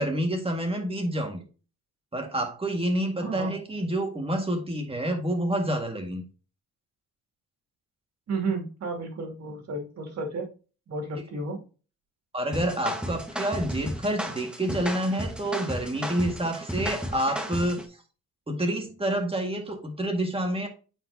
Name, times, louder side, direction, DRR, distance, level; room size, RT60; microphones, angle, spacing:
voice 1, 0.0-1.4 2.1-6.2 12.3-17.8 18.5-20.7, right 1 dB, 20° right, 3 dB, 1.8 m, -28 dB
voice 2, 3.2-3.5 8.3-10.5 10.9-11.6, right 3 dB, 60° right, 2 dB, 2.6 m, -32 dB
sound 1, 12.5-17.8, equal, 5° right, 1.4 m, -34 dB
8.8 x 4.7 x 2.7 m, 0.35 s
cardioid pair, 90°, 30 cm